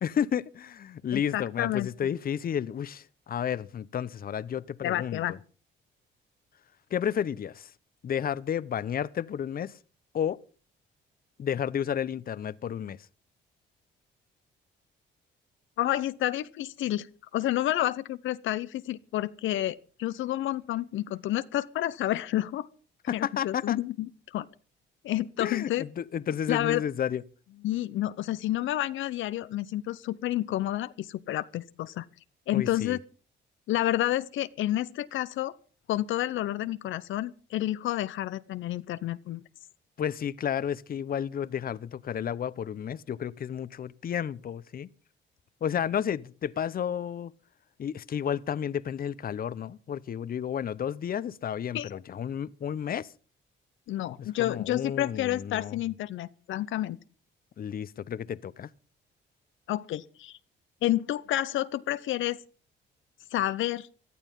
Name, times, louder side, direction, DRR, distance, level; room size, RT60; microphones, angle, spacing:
voice 1, 0.0-5.4 6.9-7.7 8.0-9.7 10.1-10.4 11.4-13.0 23.1-23.8 25.4-27.2 32.5-33.0 40.0-44.9 45.6-47.3 47.8-53.1 54.2-55.8 57.6-58.7, left 9 dB, 45° left, 0.8 m, -32 dB
voice 2, 1.1-1.9 4.8-5.3 15.8-17.1 17.3-22.7 23.1-24.1 24.3-24.4 25.0-25.8 26.5-26.8 27.6-32.0 32.5-33.0 33.7-35.5 35.9-39.4 51.7-51.9 53.9-57.0 59.7-60.4 60.8-62.4 63.3-63.9, left 14 dB, 80° left, 0.7 m, -29 dB
18.0 x 12.0 x 5.4 m
cardioid pair, 90°, 20 cm